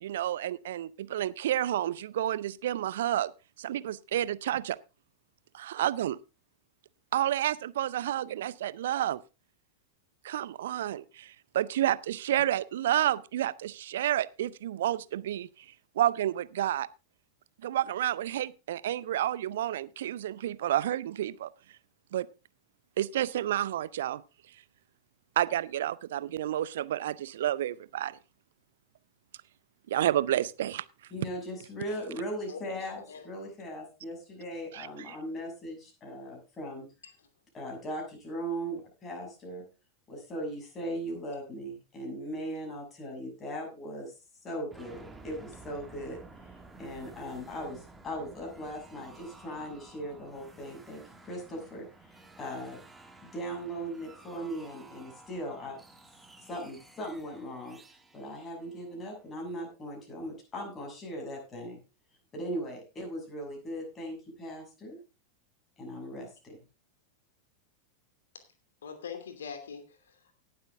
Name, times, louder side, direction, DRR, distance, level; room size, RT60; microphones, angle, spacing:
voice 1, 0.0-3.3 3.6-4.8 5.5-6.2 7.1-9.2 10.2-15.5 16.0-16.9 17.6-21.5 22.1-22.3 23.0-24.2 25.4-28.2 29.9-30.8 34.7-35.2, right 12 dB, 60° right, 0.5 m, -30 dB
voice 2, 31.1-36.9 37.5-39.6 40.1-44.1 44.4-46.2 46.5-52.8 53.2-55.8 56.5-57.8 58.1-61.8 62.3-65.0 65.8-66.5, equal, 20° left, 6.7 m, -39 dB
voice 3, 32.5-33.3 37.0-37.1 68.8-70.3, left 6 dB, 65° left, 2.7 m, -43 dB
sound 1, 44.7-59.4, right 3 dB, 10° right, 1.6 m, -53 dB
17.5 x 7.9 x 3.6 m
figure-of-eight pair, 90°, 0 cm